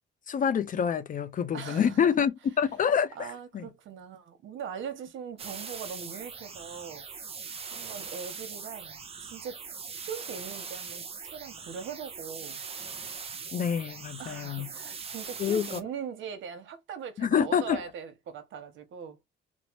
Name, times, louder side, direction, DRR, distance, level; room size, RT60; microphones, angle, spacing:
voice 1, 0.3-2.3 2.6-3.3 3.5-3.6 13.5-14.7 15.4-15.8 17.2-17.8, left 7 dB, 45° left, 0.4 m, -27 dB
voice 2, 1.5-2.1 3.1-7.0 7.7-9.6 10.0-12.6 14.2-19.2, right 7 dB, 75° right, 0.9 m, -41 dB
sound 1, 5.4-15.8, right 5 dB, 30° right, 0.5 m, -41 dB
3.1 x 2.0 x 2.9 m
cardioid pair, 90°, 20 cm